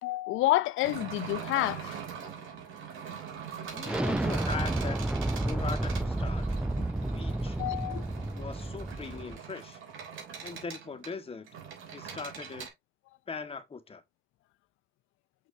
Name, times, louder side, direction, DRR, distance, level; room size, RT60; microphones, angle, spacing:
voice 1, 0.0-2.0 7.6-8.0, left 16 dB, 85° left, 0.4 m, -29 dB
sound 1, 0.8-12.7, right 7 dB, 80° right, 2.9 m, -42 dB
voice 2, 3.7-5.0 5.4-6.5 7.1-7.6 8.3-9.8 10.4-11.5 11.9-12.7 13.3-14.0, left 5 dB, 30° left, 1.5 m, -40 dB
Explosion, 3.8-9.4, right 1 dB, 5° right, 0.4 m, -31 dB
6.4 x 6.1 x 2.7 m
cardioid pair, 90°, 20 cm